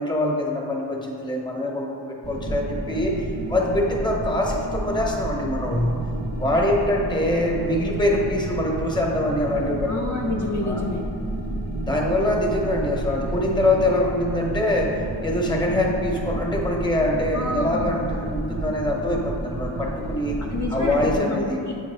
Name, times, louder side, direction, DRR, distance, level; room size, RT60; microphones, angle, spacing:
voice 1, 0.0-6.0 6.4-9.9 10.6-10.8 11.9-20.4 20.7-21.6, left 1 dB, 10° left, -1 dB, 0.8 m, -24 dB
sound 1, 2.2-21.1, right 1 dB, 25° right, 0.5 m, -30 dB
voice 2, 9.8-11.0 17.3-18.0 20.4-21.8, left 2 dB, 45° left, -1 dB, 0.5 m, -28 dB
8.5 x 3.4 x 3.3 m, 2.4 s
wide cardioid pair, 120°, 42 cm